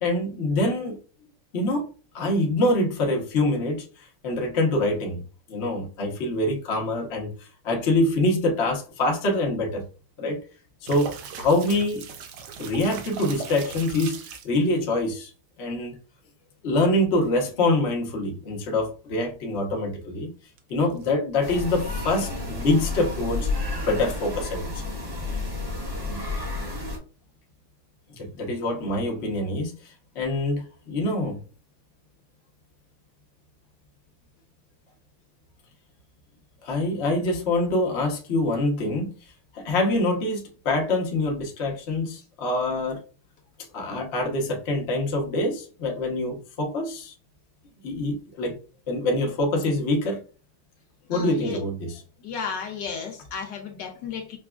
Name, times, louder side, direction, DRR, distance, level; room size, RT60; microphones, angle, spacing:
voice 1, 0.0-1.0 1.5-1.9 2.1-5.2 5.5-7.3 7.6-9.8 10.2-10.4 10.8-11.1 11.4-12.0 12.6-14.2 14.4-15.3 15.6-16.0 16.6-20.3 20.7-23.5 23.8-24.9 28.2-31.4 36.6-39.1 39.5-43.0 43.7-47.1 47.8-48.6 48.9-50.2 51.1-52.0, left 2 dB, 55° left, 0.7 m, -25 dB
sound 1, 10.8-14.6 20.6-21.1, right 6 dB, 75° right, 0.9 m, -38 dB
sound 2, 21.4-27.0, left 2 dB, 15° right, 0.7 m, -31 dB
voice 2, 51.1-51.6 52.2-54.4, left 6 dB, 75° left, 1.0 m, -33 dB
5.9 x 2.3 x 2.3 m
omnidirectional pair, 2.4 m